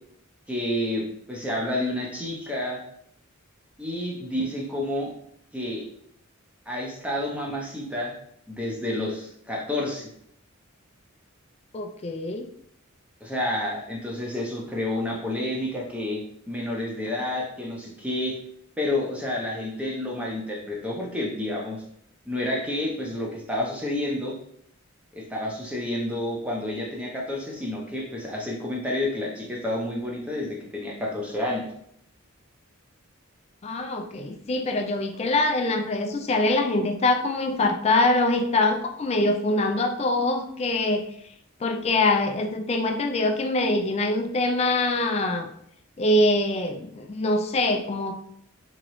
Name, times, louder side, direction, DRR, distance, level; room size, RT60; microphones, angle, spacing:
voice 1, 0.5-2.8 3.8-5.1 5.5-5.9 6.7-8.2 8.5-10.1 13.2-18.4 18.8-21.8 22.3-24.4 25.1-31.7, left 1 dB, 5° right, -2 dB, 0.7 m, -29 dB
voice 2, 11.7-12.5 33.6-41.1 41.6-45.5 46.0-48.1, left 2 dB, 30° left, 5 dB, 0.4 m, -24 dB
3.7 x 3.0 x 3.1 m, 0.70 s
head